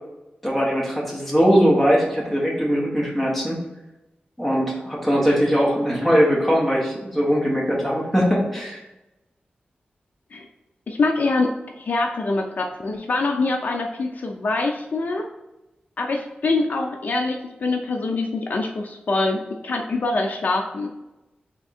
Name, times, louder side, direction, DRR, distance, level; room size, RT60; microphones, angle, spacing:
voice 1, 0.4-3.6 4.4-8.8, equal, 5° left, -3 dB, 1.2 m, -20 dB
voice 2, 10.9-15.3 16.0-20.9, left 3 dB, 55° left, 2 dB, 0.5 m, -24 dB
3.6 x 3.5 x 4.2 m, 0.98 s
wide cardioid pair, 145°, 3 cm